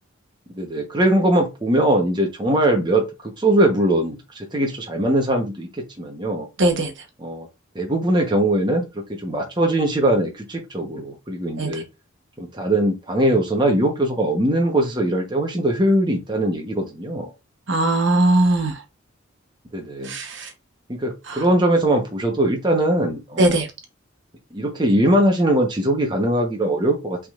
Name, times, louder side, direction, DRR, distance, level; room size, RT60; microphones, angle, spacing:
voice 1, 0.5-5.7 6.0-6.5 7.2-7.5 7.7-11.8 12.4-17.3 19.7-20.2 20.9-23.6 24.5-27.2, right 1 dB, 20° right, 1.0 m, -21 dB
voice 2, 6.6-6.9 11.6-11.8 17.7-18.8 20.0-20.5 21.3-21.4 23.4-23.7, right 1 dB, 60° right, 1.0 m, -19 dB
5.7 x 3.7 x 2.5 m
head